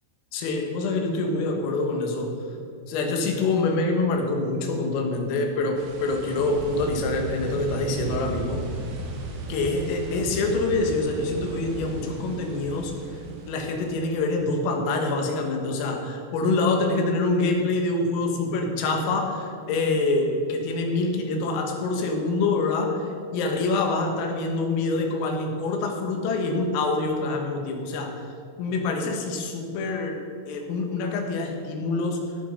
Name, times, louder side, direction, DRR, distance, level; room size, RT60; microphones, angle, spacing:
voice 1, 0.3-2.3 2.9-8.7 9.5-13.0 13.5-16.0 16.3-28.3 28.6-32.2, left 3 dB, 85° left, 3 dB, 4.2 m, -26 dB
sound 1, 5.8-14.4, right 2 dB, 90° right, 4.4 m, -35 dB
17.0 x 7.7 x 5.2 m, 2.5 s
omnidirectional pair, 5.8 m